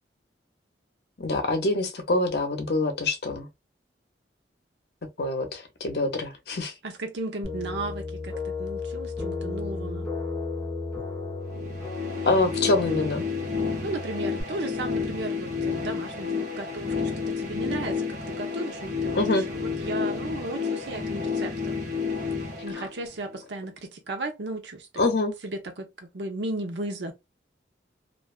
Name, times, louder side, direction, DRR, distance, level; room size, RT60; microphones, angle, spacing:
voice 1, 1.2-3.5 5.2-6.7 12.2-13.2 19.1-19.5 22.8-22.9 25.0-25.3, left 2 dB, 60° left, 0.7 m, -25 dB
voice 2, 6.8-10.1 13.8-19.2 19.5-21.8 22.6-25.0 25.4-27.1, right 2 dB, 70° right, 0.7 m, -35 dB
sound 1, 7.4-14.4, left 3 dB, 10° left, 0.6 m, -34 dB
sound 2, 11.5-23.4, left 5 dB, 40° right, 1.1 m, -30 dB
2.4 x 2.2 x 2.3 m
head